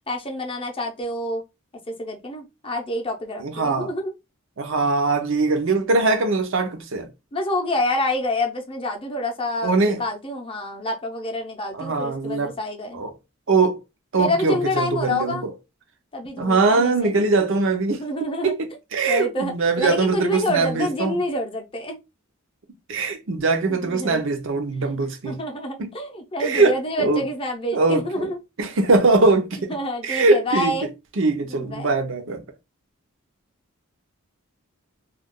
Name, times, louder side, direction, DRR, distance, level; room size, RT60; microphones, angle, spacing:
voice 1, 0.1-1.4 1.9-4.1 7.3-13.0 14.2-15.5 16.1-17.1 18.0-18.5 19.1-22.0 23.7-24.2 25.2-28.4 29.7-30.9 31.5-31.9, left 1 dB, 25° left, 0.6 m, -27 dB
voice 2, 3.4-3.9 4.6-7.1 9.6-10.0 11.7-12.5 12.9-13.1 13.5-13.8 14.1-15.5 16.4-18.0 18.4-21.2 22.9-25.4 25.8-25.9 26.4-27.3 27.7-28.3 28.6-29.8 30.0-30.8 31.2-32.4, right 3 dB, 60° right, 0.6 m, -21 dB
2.4 x 2.3 x 3.5 m
head